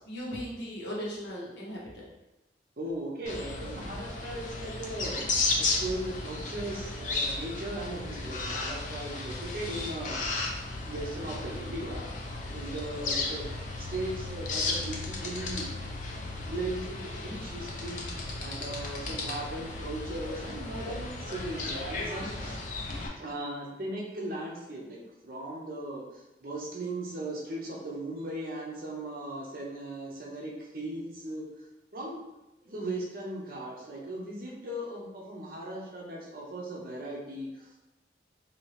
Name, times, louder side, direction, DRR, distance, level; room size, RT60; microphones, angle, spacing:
voice 1, 0.0-2.0, equal, 80° left, -5 dB, 1.0 m, -37 dB
voice 2, 2.8-5.3 5.6-10.2 10.9-12.1 12.5-15.7 16.4-22.6 23.2-31.4 31.9-32.2 32.6-37.8, right 1 dB, 50° right, -2 dB, 0.7 m, -38 dB
sound 1, 3.3-23.1, left 2 dB, 45° left, 0.4 m, -34 dB
2.9 x 2.8 x 3.2 m, 0.97 s
head